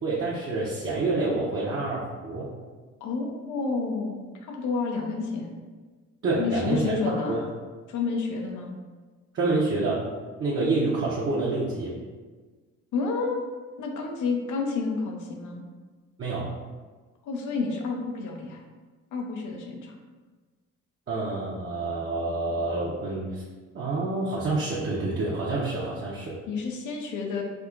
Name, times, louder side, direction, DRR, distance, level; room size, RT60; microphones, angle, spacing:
voice 1, 0.0-2.5 6.2-7.0 7.3-7.4 9.3-10.1 10.4-12.0 16.2-16.5 21.1-23.4 23.7-26.3, right 2 dB, 40° right, -6 dB, 0.8 m, -27 dB
voice 2, 3.0-5.5 6.4-7.5 7.9-8.7 12.9-13.4 13.8-15.6 17.2-18.6 19.1-20.0 26.5-27.4, left 4 dB, 80° left, 2 dB, 0.7 m, -30 dB
4.7 x 2.8 x 2.4 m, 1.4 s
cardioid pair, 90°, 30 cm